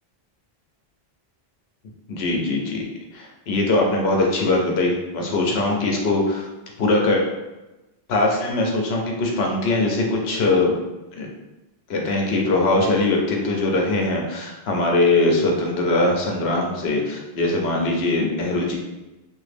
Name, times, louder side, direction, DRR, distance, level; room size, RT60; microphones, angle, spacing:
voice 1, 2.1-2.8 3.1-6.5 6.8-7.2 8.1-10.8 11.2-11.3 11.9-18.7, left 2 dB, 75° left, 0 dB, 0.9 m, -21 dB
2.9 x 2.5 x 3.3 m, 1.0 s
omnidirectional pair, 1.1 m